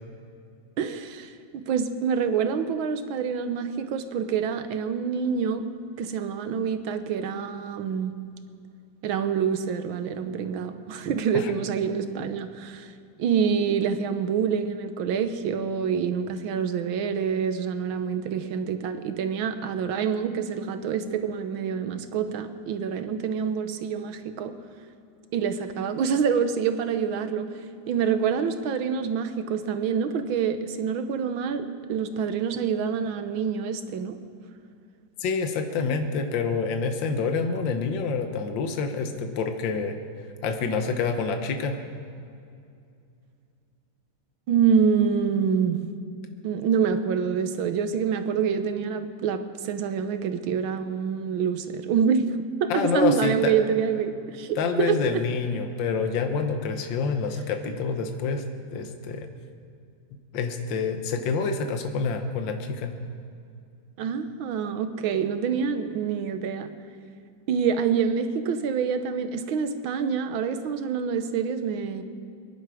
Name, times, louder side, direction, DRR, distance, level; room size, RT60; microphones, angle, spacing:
voice 1, 0.8-5.7 6.0-8.1 9.0-12.9 13.2-24.6 25.3-27.5 27.9-34.2 44.5-45.9 46.4-55.2 64.0-66.7 67.5-72.0, right 7 dB, 85° right, 9 dB, 1.7 m, -26 dB
voice 2, 35.2-40.0 40.4-41.8 52.7-53.5 54.6-58.4 58.7-59.3 60.3-62.9, left 5 dB, 70° left, 6 dB, 1.7 m, -27 dB
22.5 x 11.5 x 4.9 m, 2.5 s
omnidirectional pair, 2.2 m